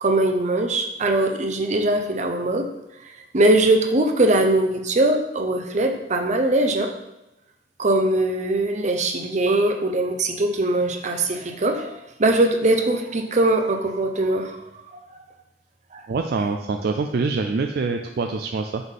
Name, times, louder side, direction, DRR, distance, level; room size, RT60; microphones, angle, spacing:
voice 1, 0.0-2.7 3.3-6.9 7.8-15.0 15.9-16.0, right 2 dB, 40° right, 4 dB, 0.7 m, -21 dB
voice 2, 16.1-18.8, right 4 dB, 60° right, 5 dB, 0.4 m, -25 dB
6.0 x 3.7 x 5.4 m, 0.93 s
head